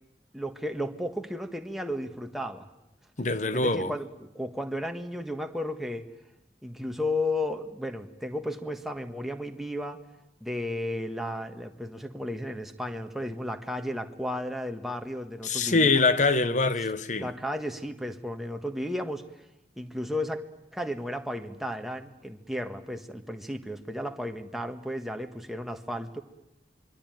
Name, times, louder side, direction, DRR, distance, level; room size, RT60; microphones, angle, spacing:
voice 1, 0.3-2.7 3.5-6.1 6.6-10.0 10.4-16.0 16.4-16.6 17.2-19.2 19.8-20.4 20.7-26.2, left 1 dB, ahead, 1.5 m, -34 dB
voice 2, 3.2-3.9 15.4-17.3, left 3 dB, 45° left, 1.1 m, -24 dB
26.5 x 22.5 x 9.3 m
head